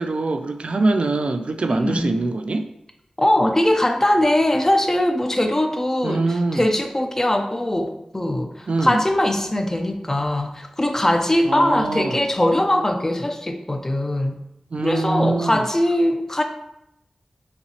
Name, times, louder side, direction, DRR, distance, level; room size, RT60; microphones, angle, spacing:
voice 1, 0.0-2.7 6.0-6.7 8.7-9.0 11.5-12.2 14.7-15.6, right 3 dB, 65° right, 7 dB, 0.3 m, -23 dB
voice 2, 1.7-2.1 3.2-14.4 14.8-16.4, left 1 dB, 20° left, 5 dB, 0.5 m, -21 dB
4.1 x 2.9 x 2.8 m, 0.82 s
wide cardioid pair, 60°, 2 cm